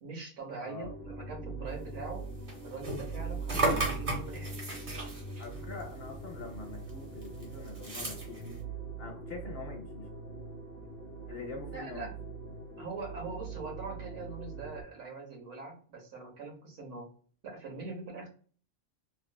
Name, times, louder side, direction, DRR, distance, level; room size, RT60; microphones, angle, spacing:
voice 1, 0.0-2.3 2.6-4.5 5.4-5.5 11.7-12.2 12.8-17.1 17.4-18.3, right 3 dB, 70° right, 0 dB, 1.3 m, -42 dB
voice 2, 0.6-0.9 5.4-8.6 9.0-10.1 11.3-12.1, left 4 dB, 55° left, 2 dB, 0.8 m, -44 dB
sound 1, 0.8-14.8, right 4 dB, 15° left, 1.1 m, -42 dB
sound 2, 2.0-6.6 6.9-8.6, right 2 dB, 40° right, 0.9 m, -35 dB
3.0 x 2.4 x 2.2 m, 0.42 s
omnidirectional pair, 1.3 m